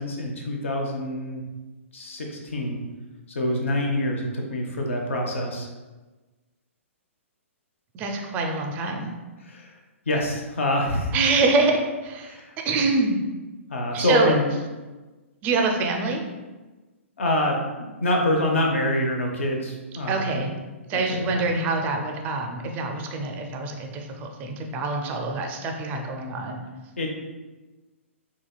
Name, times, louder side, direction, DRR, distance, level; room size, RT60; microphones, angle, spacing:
voice 1, 0.0-1.4 1.9-2.8 3.3-5.7 9.4-9.8 10.1-11.1 12.3-12.5 13.7-14.5 17.2-20.4 20.9-21.0 21.3-21.4 27.0-27.3, left 1 dB, 65° left, 1 dB, 0.6 m, -26 dB
voice 2, 7.9-9.1 11.1-12.4 12.6-13.2 13.9-14.3 15.4-16.2 20.1-20.5 20.9-26.6, right 3 dB, 25° right, 3 dB, 0.4 m, -25 dB
4.0 x 2.8 x 2.3 m, 1.2 s
figure-of-eight pair, 120°, 7 cm